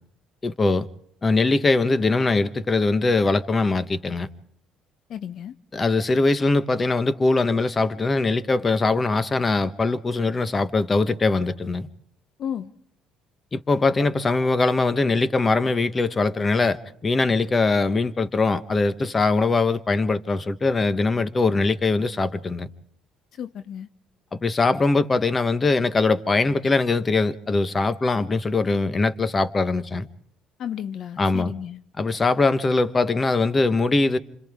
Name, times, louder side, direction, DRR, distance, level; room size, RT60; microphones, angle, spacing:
voice 1, 0.4-0.9 1.2-4.3 5.7-11.9 13.5-22.7 24.4-30.1 31.2-31.5 32.0-34.2, left 3 dB, 25° left, 1.2 m, -22 dB
voice 2, 5.1-5.5 12.4-12.7 23.3-23.9 30.6-31.8, left 9 dB, 55° left, 0.7 m, -33 dB
28.0 x 26.0 x 3.6 m
cardioid pair, 105°, 0 cm